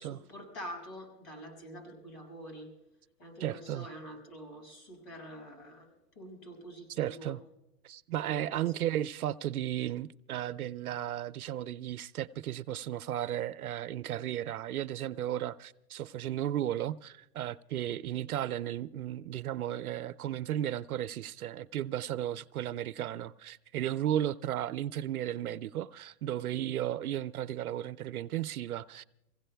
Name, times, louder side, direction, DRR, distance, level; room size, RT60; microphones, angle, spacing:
voice 1, 0.0-2.7 3.2-5.9 6.1-7.4 8.3-8.6, equal, 35° left, 6.6 m, -46 dB
voice 2, 3.4-3.9 7.0-7.4 7.8-29.0, right 12 dB, 65° right, 0.6 m, -34 dB
27.5 x 16.5 x 2.2 m
hypercardioid pair, 165°, 47 cm